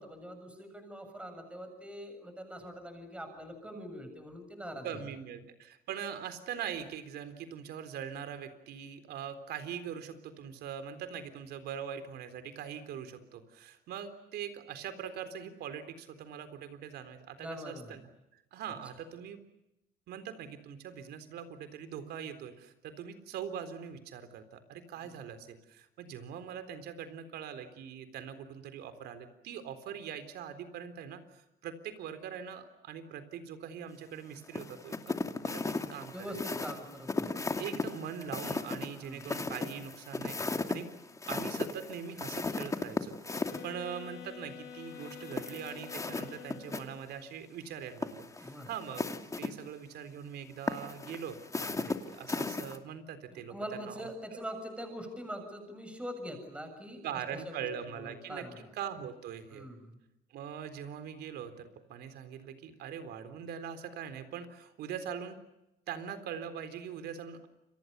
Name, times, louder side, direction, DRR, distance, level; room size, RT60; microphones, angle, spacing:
voice 1, 0.0-4.9 17.4-18.0 25.1-25.2 36.1-37.6 38.9-39.3 43.5-43.6 48.4-48.7 53.3-58.7 59.5-60.0, equal, 5° right, 6 dB, 7.1 m, -43 dB
voice 2, 4.8-18.0 18.3-19.4 20.1-36.4 37.6-40.9 41.3-49.1 49.4-54.4 57.0-58.4 58.7-59.7 60.3-65.4 65.9-67.5, right 8 dB, 75° right, 10 dB, 3.9 m, -42 dB
sound 1, 34.5-43.6 45.0-46.8 47.1-47.2 47.9-49.5 50.7-52.8, left 3 dB, 20° left, 2.5 m, -36 dB
sound 2, 43.3-47.2, left 8 dB, 75° left, 5.4 m, -48 dB
29.5 x 24.5 x 6.8 m, 0.89 s
cardioid pair, 110°, 17 cm